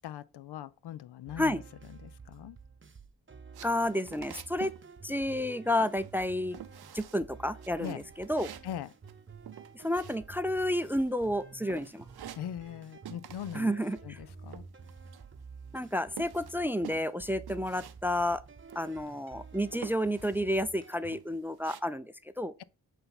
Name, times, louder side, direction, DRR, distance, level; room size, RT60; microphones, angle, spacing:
voice 1, 0.0-1.6 2.0-2.6 7.8-8.0 8.6-8.9 12.3-13.7 14.0-14.6, left 10 dB, 75° left, 0.5 m, -41 dB
sound 1, 1.3-21.2, right 5 dB, 30° right, 0.8 m, -51 dB
sound 2, 3.5-4.8 5.1-5.5 5.8-6.3 6.5-7.3 7.6-10.6 10.9-11.4 11.7-12.8 13.1-13.7 14.0-15.4 15.7-18.0 18.3-18.4 18.7-19.3 19.7-20.4 20.9-21.8, right 11 dB, 65° right, 0.6 m, -48 dB
voice 2, 3.6-4.7 5.0-6.6 6.9-8.5 9.7-12.0 13.5-14.2 15.7-18.4 18.8-22.5, left 1 dB, 5° right, 0.4 m, -31 dB
7.8 x 2.7 x 5.7 m
cardioid pair, 50°, 40 cm